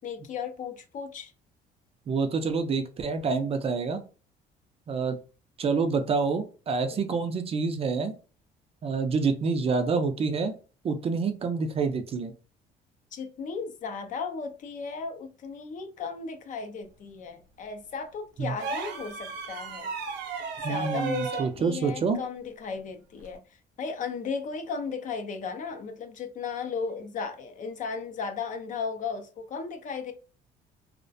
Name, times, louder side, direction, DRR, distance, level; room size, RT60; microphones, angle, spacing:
voice 1, 0.0-1.3 6.9-7.0 13.1-19.9 20.7-23.4 23.8-30.1, left 5 dB, 50° left, 0.5 m, -35 dB
voice 2, 2.1-4.0 4.9-5.2 5.6-8.1 8.8-10.5 10.8-12.3 18.4-18.5 20.6-22.2, right 4 dB, 35° right, 0.4 m, -27 dB
sound 1, 18.6-21.5 23.2-23.4, right 5 dB, 80° right, 0.6 m, -34 dB
2.4 x 2.1 x 2.5 m
cardioid pair, 110°, 17 cm